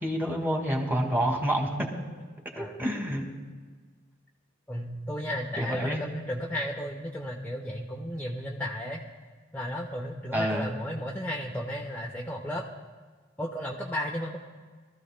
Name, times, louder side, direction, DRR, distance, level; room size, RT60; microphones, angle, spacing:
voice 1, 0.0-1.9 2.6-3.4 5.6-6.0 10.3-10.7, equal, 10° right, 0 dB, 2.0 m, -28 dB
voice 2, 4.7-9.0 9.5-12.7 13.4-14.4, equal, 10° left, -2 dB, 0.9 m, -34 dB
23.0 x 14.0 x 2.2 m, 1.5 s
head